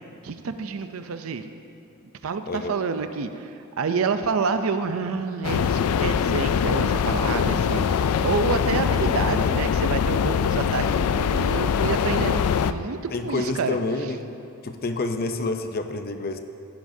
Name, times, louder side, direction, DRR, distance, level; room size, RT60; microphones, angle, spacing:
voice 1, 0.2-1.5 2.2-13.8, right 5 dB, 65° right, 9 dB, 0.5 m, -28 dB
voice 2, 2.4-2.8 10.8-11.1 11.9-12.0 13.1-14.3 14.6-16.4, left 2 dB, 45° left, 7 dB, 0.6 m, -28 dB
sound 1, 5.4-12.7, left 7 dB, 90° left, 0.3 m, -23 dB
16.5 x 10.0 x 2.7 m, 2.6 s
head